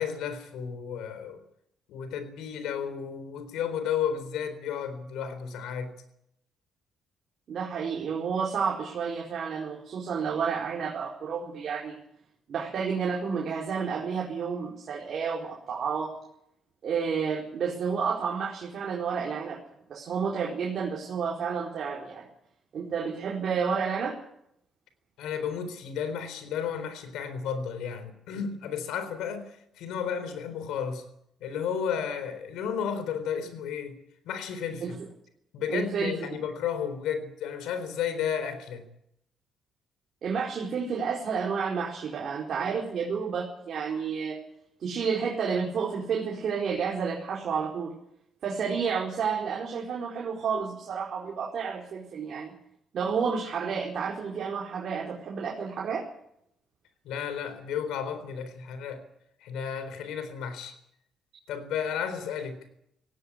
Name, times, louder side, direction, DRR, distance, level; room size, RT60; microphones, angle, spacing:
voice 1, 0.0-1.4 1.9-5.9 25.2-29.5 29.8-31.0 31.4-34.0 34.2-35.0 35.5-38.8 57.0-59.0 59.4-60.7 61.5-62.6, left 7 dB, 90° left, 10 dB, 4.0 m, -33 dB
voice 2, 7.5-12.0 12.5-16.1 16.8-19.6 19.9-22.3 22.7-24.2 34.8-34.9 35.7-36.2 40.2-44.4 44.8-47.9 48.4-52.5 52.9-56.1, right 6 dB, 60° right, -2 dB, 4.5 m, -30 dB
18.5 x 17.0 x 9.9 m, 0.76 s
cardioid pair, 90°, 0 cm